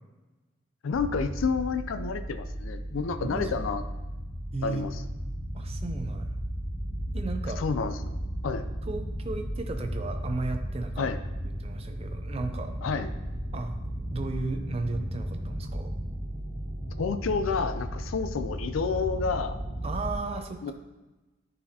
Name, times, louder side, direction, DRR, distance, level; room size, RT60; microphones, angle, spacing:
voice 1, 0.8-3.8 4.6-5.0 7.6-8.0 8.4-8.7 11.0-11.2 12.8-13.1 17.0-19.6 20.6-20.7, left 5 dB, 85° left, 11 dB, 0.4 m, -29 dB
sound 1, 0.9-20.1, equal, 10° right, 1.2 m, -35 dB
voice 2, 3.2-3.5 4.5-4.9 5.5-6.3 7.1-7.6 8.8-11.1 11.4-12.7 13.5-13.8 14.1-15.9 19.8-20.7, right 3 dB, 30° right, 6 dB, 0.5 m, -35 dB
9.9 x 4.2 x 2.8 m, 1.1 s
head